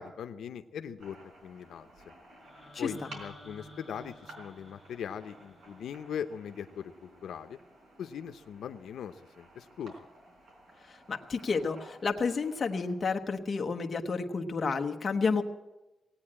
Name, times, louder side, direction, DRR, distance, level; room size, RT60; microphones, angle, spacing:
voice 1, 0.0-1.9 2.8-7.6 8.0-9.9, left 8 dB, 90° left, 8 dB, 0.7 m, -40 dB
sound 1, 1.0-12.9, right 1 dB, 70° right, 4.1 m, -54 dB
sound 2, 2.4-6.5, left 1 dB, 15° right, 3.7 m, -52 dB
voice 2, 10.9-15.4, left 4 dB, 30° left, 4 dB, 1.0 m, -30 dB
18.0 x 8.8 x 8.7 m, 1.0 s
wide cardioid pair, 175°, 0 cm